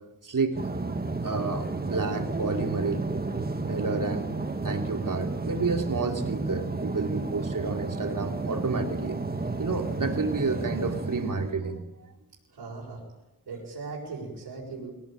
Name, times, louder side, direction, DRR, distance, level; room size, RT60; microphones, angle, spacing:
voice 1, 0.2-0.6 0.9-3.0 3.6-4.3 4.6-9.2 9.6-11.8, right 4 dB, 50° right, 3 dB, 3.4 m, -30 dB
sound 1, 0.5-11.5, right 3 dB, 25° right, 1.7 m, -32 dB
voice 2, 12.5-13.0 13.5-14.9, right 4 dB, 85° right, -4 dB, 6.8 m, -38 dB
25.0 x 18.0 x 9.0 m, 0.96 s
wide cardioid pair, 100°, 40 cm